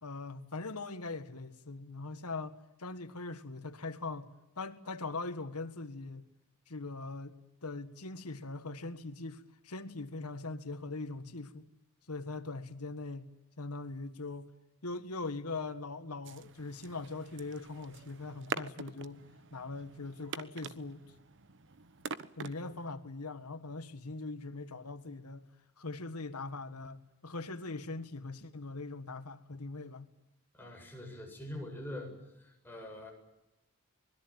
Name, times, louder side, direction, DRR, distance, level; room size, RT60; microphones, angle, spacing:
voice 1, 0.0-4.3 4.6-6.3 6.7-11.7 12.1-13.3 13.6-14.5 14.8-19.2 19.5-21.0 22.4-25.4 25.8-30.1, left 3 dB, 85° left, 1.7 m, -41 dB
sound 1, 16.2-22.9, right 5 dB, 55° right, 1.1 m, -45 dB
voice 2, 30.5-32.1 32.4-33.1, left 1 dB, 10° left, 7.8 m, -44 dB
25.5 x 21.5 x 9.0 m
head